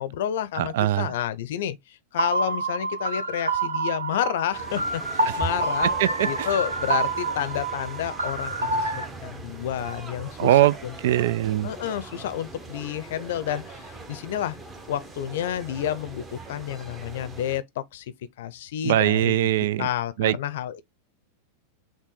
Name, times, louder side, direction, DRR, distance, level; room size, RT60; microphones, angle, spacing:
voice 1, 0.0-5.9 6.2-10.9 11.6-14.6 14.9-18.1 18.4-19.4 19.8-20.8, left 11 dB, 55° left, 0.6 m, -30 dB
voice 2, 0.6-1.1 6.0-6.5 10.4-10.7 11.0-11.7 18.8-19.9 20.2-20.4, right 13 dB, 55° right, 0.3 m, -21 dB
sound 1, 2.2-9.0, right 3 dB, 70° right, 1.0 m, -27 dB
sound 2, 4.5-17.6, right 3 dB, 15° right, 1.0 m, -40 dB
5.8 x 2.2 x 3.9 m
figure-of-eight pair, 90°, 0 cm